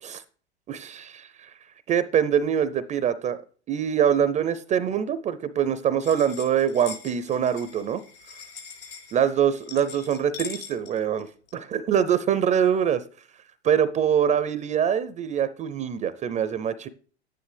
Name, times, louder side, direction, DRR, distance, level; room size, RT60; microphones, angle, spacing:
voice 1, 0.7-1.5 1.9-3.4 3.7-8.0 9.1-11.3 11.5-13.0 13.6-16.9, right 8 dB, 20° right, 14 dB, 0.5 m, -24 dB
sound 1, 6.0-11.6, left 6 dB, 85° left, 4.4 m, -42 dB
11.0 x 9.7 x 3.3 m, 0.42 s
hypercardioid pair, 105°, 33 cm